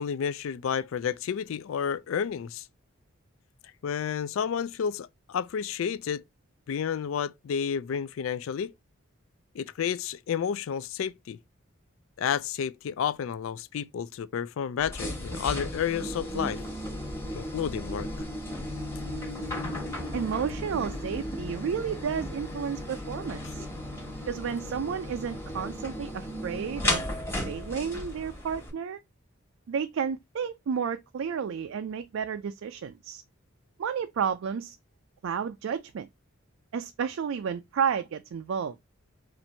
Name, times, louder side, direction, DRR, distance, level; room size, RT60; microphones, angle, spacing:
voice 1, 0.0-2.6 3.8-6.2 6.7-8.7 9.5-11.4 12.2-16.6 17.3-18.1, left 7 dB, 75° left, 0.3 m, -31 dB
sound 1, 14.8-28.7, left 1 dB, 10° left, 1.2 m, -35 dB
voice 2, 20.1-23.7 24.3-27.0 27.5-29.0 29.7-33.2 33.8-34.8 35.2-36.1 36.7-38.8, right 7 dB, 70° right, 0.3 m, -32 dB
4.3 x 2.6 x 4.3 m
head